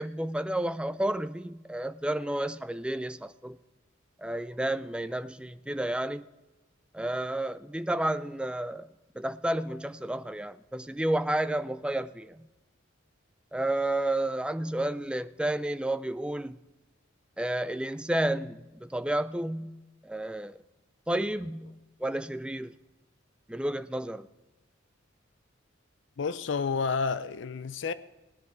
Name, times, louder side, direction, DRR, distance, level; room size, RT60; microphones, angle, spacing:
voice 1, 0.0-3.6 4.2-6.3 6.9-8.9 9.1-12.5 13.5-16.6 17.4-20.6 21.1-22.7 23.5-24.3, right 1 dB, 5° right, 0.3 m, -31 dB
voice 2, 26.2-27.9, left 5 dB, 65° left, 0.4 m, -30 dB
18.0 x 9.7 x 4.6 m
head